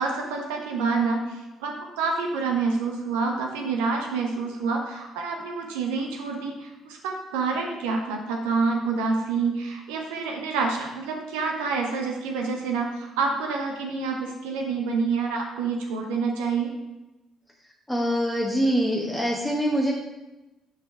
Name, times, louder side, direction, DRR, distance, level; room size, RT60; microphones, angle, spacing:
voice 1, 0.0-16.7, right 4 dB, 70° right, 2 dB, 0.8 m, -27 dB
voice 2, 17.9-19.9, equal, 5° left, -1 dB, 1.0 m, -24 dB
6.6 x 5.0 x 4.6 m, 1.0 s
figure-of-eight pair, 45°, 0 cm